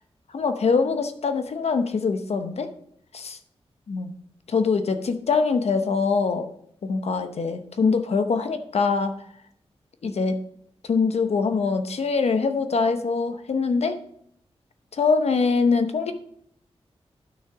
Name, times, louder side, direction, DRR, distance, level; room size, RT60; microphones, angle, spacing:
voice 1, 0.3-2.7 3.1-3.4 3.9-4.2 4.5-6.5 6.8-9.3 10.0-10.4 10.8-14.0 14.9-16.1, left 4 dB, 75° left, 8 dB, 0.9 m, -23 dB
9.6 x 6.3 x 4.9 m, 0.67 s
wide cardioid pair, 115°, 11 cm